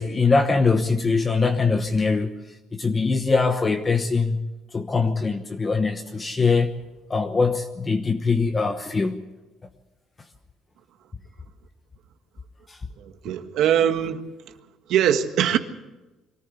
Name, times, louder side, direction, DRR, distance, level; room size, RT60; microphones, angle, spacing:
voice 1, 0.0-2.3 2.7-6.8 7.1-9.2 12.7-12.8, left 4 dB, 20° left, 1.0 m, -22 dB
voice 2, 13.0-14.2 14.9-15.6, right 9 dB, 70° right, 1.6 m, -22 dB
23.5 x 15.0 x 8.2 m
cardioid pair, 145°, 0 cm